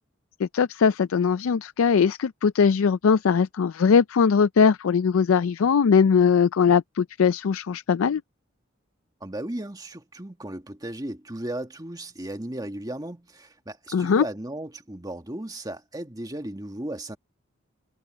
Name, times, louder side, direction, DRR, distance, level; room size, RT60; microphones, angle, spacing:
voice 1, 0.4-8.2 13.9-14.2, left 6 dB, 85° left, 0.4 m, -20 dB
voice 2, 9.2-17.2, right 1 dB, 20° right, 1.8 m, -35 dB
head